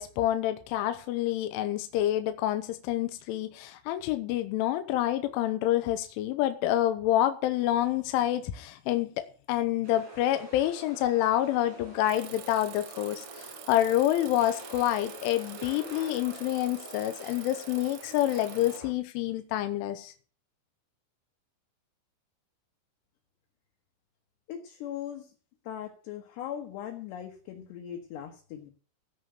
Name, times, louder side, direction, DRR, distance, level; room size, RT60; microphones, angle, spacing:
voice 1, 0.0-20.1, left 13 dB, 85° left, 3.2 m, -28 dB
sound 1, 9.8-18.9, right 1 dB, 55° right, 9.0 m, -46 dB
Bicycle, 12.1-18.8, right 13 dB, 80° right, 3.5 m, -47 dB
voice 2, 24.5-25.3 25.6-28.7, left 10 dB, 70° left, 3.2 m, -39 dB
16.0 x 5.6 x 6.7 m
omnidirectional pair, 5.7 m